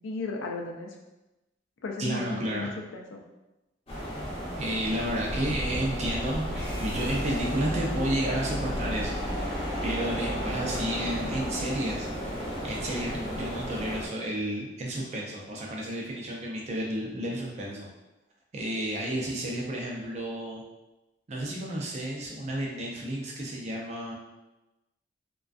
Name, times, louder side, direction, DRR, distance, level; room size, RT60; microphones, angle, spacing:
voice 1, 0.0-1.0 1.8-3.2, left 3 dB, 85° left, 1 dB, 0.4 m, -35 dB
voice 2, 2.0-2.7 4.6-6.5 6.8-9.2 9.5-12.1 12.6-17.9 18.5-20.6 21.3-24.1, right 1 dB, 35° right, -2 dB, 0.4 m, -31 dB
sound 1, 3.9-14.1, equal, 30° left, 0.6 m, -34 dB
sound 2, 6.5-12.7, equal, 55° right, 0.9 m, -37 dB
2.4 x 2.2 x 2.4 m, 1.0 s
head